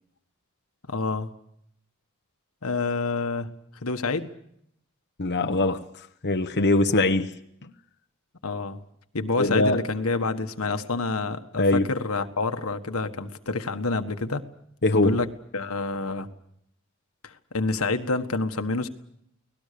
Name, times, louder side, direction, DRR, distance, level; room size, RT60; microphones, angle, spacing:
voice 1, 0.9-1.3 2.6-3.5 3.8-4.3 8.4-8.8 9.1-14.4 14.9-15.3 15.5-16.3 17.2-18.9, left 3 dB, 85° left, 1.5 m, -28 dB
voice 2, 5.2-5.9 6.2-7.3 9.4-9.8 11.5-11.9 14.8-15.2, left 2 dB, 55° left, 1.0 m, -22 dB
30.0 x 19.0 x 6.8 m
head